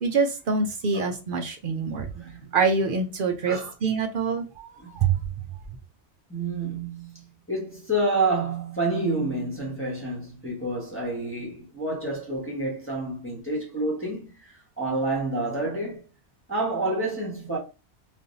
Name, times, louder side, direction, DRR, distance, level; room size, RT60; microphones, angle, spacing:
voice 1, 0.0-2.1 2.5-5.2, right 5 dB, 60° right, 0.7 m, -25 dB
voice 2, 2.1-2.5 3.5-3.7 4.8-4.9 6.3-16.0 16.5-17.6, right 2 dB, 10° left, 1.2 m, -29 dB
3.3 x 2.6 x 2.7 m
omnidirectional pair, 1.1 m